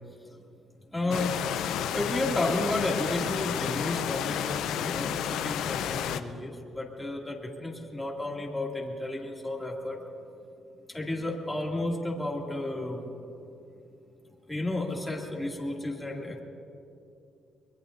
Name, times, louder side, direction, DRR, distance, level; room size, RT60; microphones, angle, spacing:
voice 1, 0.9-1.4 1.9-10.0 10.9-13.1 14.5-16.4, left 2 dB, 10° left, -2 dB, 2.4 m, -32 dB
sound 1, 1.1-6.2, left 9 dB, 85° left, 0.5 m, -31 dB
23.5 x 21.5 x 2.6 m, 2.5 s
cardioid pair, 90°, 0 cm